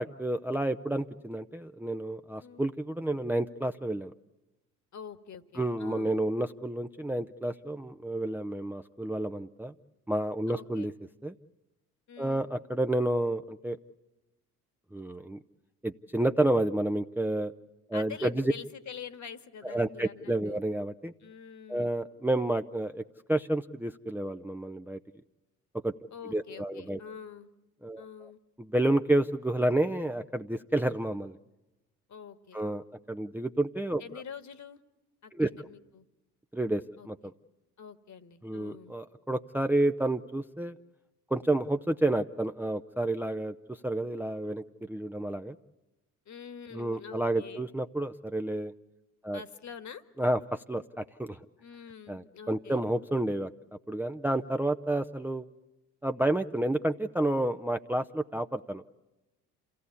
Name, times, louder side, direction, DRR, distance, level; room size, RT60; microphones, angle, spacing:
voice 1, 0.0-4.1 5.6-9.7 10.1-10.9 11.2-11.3 12.2-13.8 14.9-15.4 15.8-17.5 17.9-18.5 19.6-21.1 21.7-23.0 23.3-25.0 25.8-25.9 26.3-27.0 27.8-28.3 28.6-31.4 32.5-34.0 35.3-35.7 36.5-37.2 38.4-40.8 41.3-45.6 46.7-48.7 49.2-49.4 50.2-51.4 52.1-53.5 53.9-55.5 56.0-58.8, right 1 dB, 5° right, 7 dB, 0.8 m, -30 dB
voice 2, 2.4-2.7 4.9-6.2 10.5-10.9 12.1-12.5 17.9-20.6 21.2-21.9 26.1-27.5 28.0-28.4 32.1-32.6 34.0-34.8 35.2-36.1 37.0-37.1 37.8-38.9 46.3-47.7 49.3-50.0 51.6-52.8, left 7 dB, 40° left, 10 dB, 1.8 m, -46 dB
28.5 x 17.0 x 8.4 m, 0.99 s
figure-of-eight pair, 55°, 44 cm